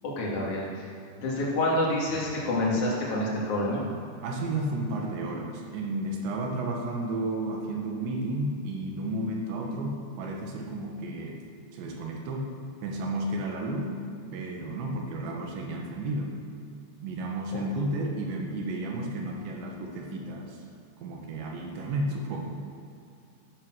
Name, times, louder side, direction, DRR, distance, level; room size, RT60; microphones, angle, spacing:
voice 1, 0.0-0.9 1.2-3.8 17.5-17.6, left 1 dB, 45° left, -5 dB, 3.7 m, -28 dB
voice 2, 4.2-11.4 11.7-12.5 12.8-14.0 14.3-16.4 17.0-20.6 21.0-22.6, right 1 dB, 80° right, 1 dB, 3.8 m, -32 dB
13.5 x 11.0 x 6.4 m, 2.4 s
omnidirectional pair, 5.1 m